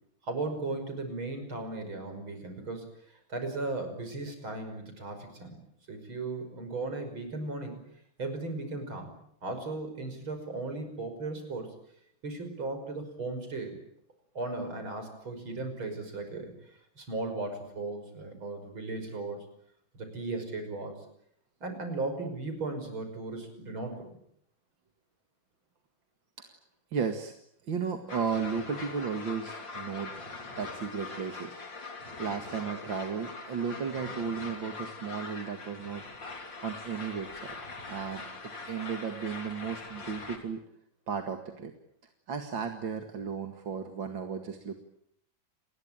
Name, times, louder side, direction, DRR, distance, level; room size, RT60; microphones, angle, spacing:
voice 1, 0.2-5.6 5.9-7.8 8.2-9.1 9.4-11.7 12.2-13.8 14.3-16.5 17.0-19.4 19.9-21.0 21.6-24.1, right 3 dB, 90° right, 7 dB, 6.5 m, -36 dB
voice 2, 26.9-27.3 27.7-30.1 30.6-37.6 37.9-38.2 38.7-40.6 41.1-41.7 42.3-44.7, right 6 dB, 70° right, 5 dB, 2.7 m, -35 dB
sound 1, 28.1-40.4, left 3 dB, 65° left, 4.3 m, -42 dB
29.5 x 21.0 x 9.0 m, 0.72 s
omnidirectional pair, 2.2 m